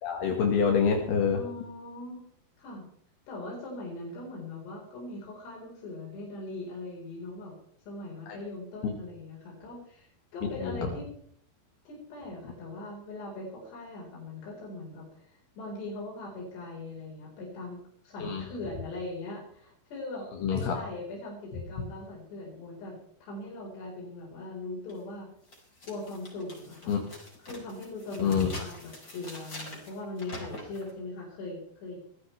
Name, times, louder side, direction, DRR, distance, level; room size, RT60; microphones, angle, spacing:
voice 1, 0.0-1.4 8.3-8.4 8.8-8.9 10.6-10.9 18.2-18.4 20.4-20.8 26.9-27.0 28.2-28.5, left 6 dB, 75° left, 2 dB, 3.7 m, -26 dB
voice 2, 1.3-2.2 2.6-2.8 3.3-7.5 7.9-11.1 11.8-17.8 18.0-25.3 25.8-26.9 27.4-32.0, left 2 dB, 90° left, -3 dB, 6.9 m, -40 dB
sound 1, 24.9-25.0 25.5-30.9, left 1 dB, 20° left, 4.7 m, -45 dB
22.0 x 15.5 x 3.4 m, 0.64 s
omnidirectional pair, 4.7 m